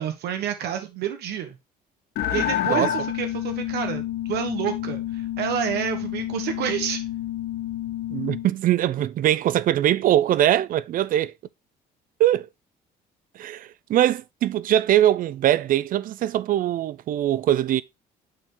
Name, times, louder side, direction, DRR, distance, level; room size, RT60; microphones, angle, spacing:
voice 1, 0.0-1.6 2.3-4.0 4.3-7.0, right 9 dB, 75° right, 1.3 m, -29 dB
sound 1, 2.2-8.5, left 12 dB, 75° left, 1.0 m, -29 dB
voice 2, 8.1-11.3 12.2-12.5 13.4-17.8, right 12 dB, 55° right, 0.5 m, -22 dB
6.5 x 3.7 x 4.3 m
cardioid pair, 110°, 17 cm